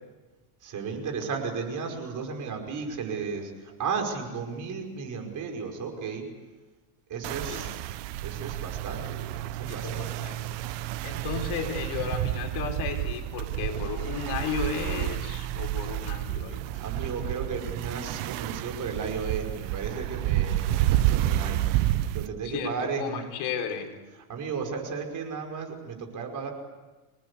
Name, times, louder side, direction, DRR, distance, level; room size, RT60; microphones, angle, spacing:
voice 1, 0.6-6.3 7.1-7.9 8.2-10.2 16.8-23.3 24.3-26.5, right 5 dB, 40° right, 3 dB, 5.5 m, -34 dB
sound 1, 7.2-22.3, right 14 dB, 65° right, 1.2 m, -30 dB
voice 2, 7.4-7.8 9.7-10.6 11.0-16.6 22.4-23.9, left 6 dB, 60° left, 3 dB, 4.3 m, -34 dB
27.0 x 19.0 x 8.4 m, 1.2 s
supercardioid pair, 120°, 45 cm